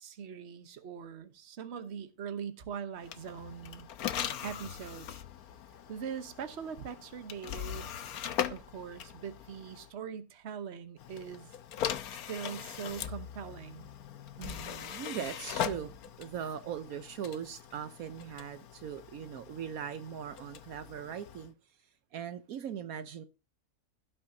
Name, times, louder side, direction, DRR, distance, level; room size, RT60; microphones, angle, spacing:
voice 1, 0.0-3.9 4.4-5.2 5.9-7.9 8.5-11.5 12.1-13.9, right 7 dB, 50° right, 1.2 m, -42 dB
sound 1, 3.0-9.9 11.0-21.5, left 9 dB, 80° left, 1.3 m, -40 dB
voice 2, 14.4-21.5 22.1-23.3, right 8 dB, 75° right, 1.2 m, -40 dB
16.5 x 6.2 x 2.7 m
omnidirectional pair, 1.5 m